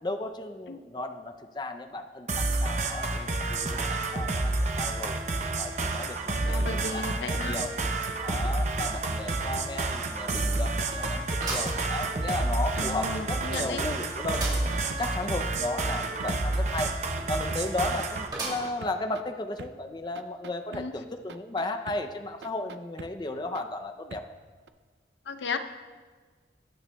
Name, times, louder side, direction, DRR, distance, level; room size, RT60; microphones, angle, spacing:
voice 1, 0.0-5.2 5.6-7.7 8.2-14.5 15.0-16.9 17.3-24.2, left 2 dB, 25° left, 6 dB, 0.4 m, -35 dB
sound 1, 2.3-18.3, right 2 dB, 40° right, 0.7 m, -29 dB
voice 2, 6.4-7.6 12.8-13.8 20.7-20.9 25.3-25.6, left 4 dB, 85° left, 8 dB, 0.6 m, -35 dB
sound 2, 6.4-14.0 14.2-16.6 16.8-19.2 19.6-19.7 20.1-20.8 21.3-22.0 22.4-23.1 23.5-23.6 24.1-24.2 24.7-24.8, right 4 dB, 75° right, 0.5 m, -42 dB
sound 3, 9.2-9.3 9.7-9.8 11.4-12.5 13.0-13.1 14.3-14.7 15.2-15.3 15.4-15.5 18.3-18.9 19.5-19.6 20.6-20.7, right 2 dB, 25° right, 2.7 m, -36 dB
19.0 x 9.0 x 2.2 m, 1.5 s
head